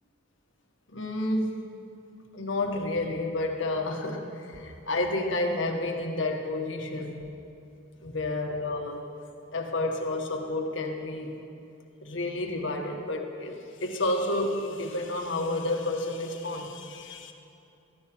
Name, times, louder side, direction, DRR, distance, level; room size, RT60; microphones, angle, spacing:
voice 1, 0.9-1.6 2.3-7.2 8.0-9.0 9.5-11.4 12.0-17.3, left 2 dB, 65° left, 2 dB, 1.6 m, -30 dB
16.5 x 14.5 x 4.6 m, 2.7 s
head